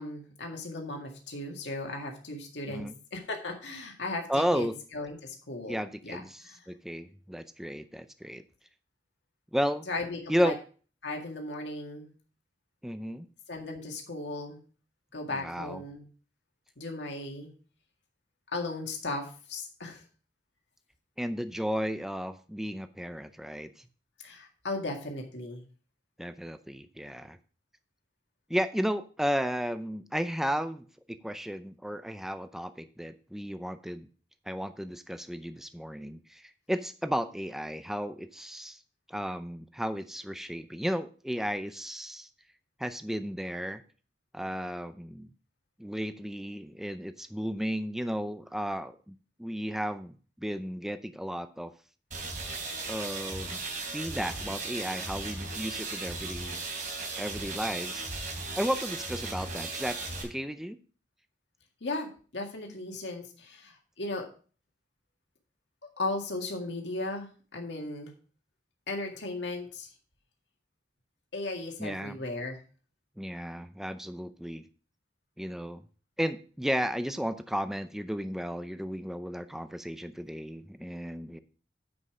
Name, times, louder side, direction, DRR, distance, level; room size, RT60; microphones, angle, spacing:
voice 1, 0.0-4.7 4.9-5.8 6.0-6.6 9.9-10.5 11.0-12.1 13.5-14.6 15.1-16.1 16.8-17.5 18.5-20.0 24.2-25.7 61.8-64.3 66.0-68.1 68.9-69.9 71.3-72.6, left 2 dB, 70° left, 1 dB, 2.0 m, -36 dB
voice 2, 4.3-4.7 5.7-8.4 9.5-9.9 10.3-10.6 12.8-13.3 15.4-15.8 21.2-23.7 26.2-27.4 28.5-34.1 34.5-38.8 39.1-42.3 42.8-43.8 44.3-45.3 45.8-51.7 52.9-53.6 53.9-56.6 57.2-58.0 58.6-60.0 60.2-60.8 71.8-72.2 73.2-74.6 75.4-75.8 76.2-81.4, equal, ahead, 10 dB, 0.5 m, -33 dB
sound 1, 52.1-60.2, right 3 dB, 45° right, 3.3 m, -36 dB
9.7 x 5.3 x 5.0 m, 0.40 s
head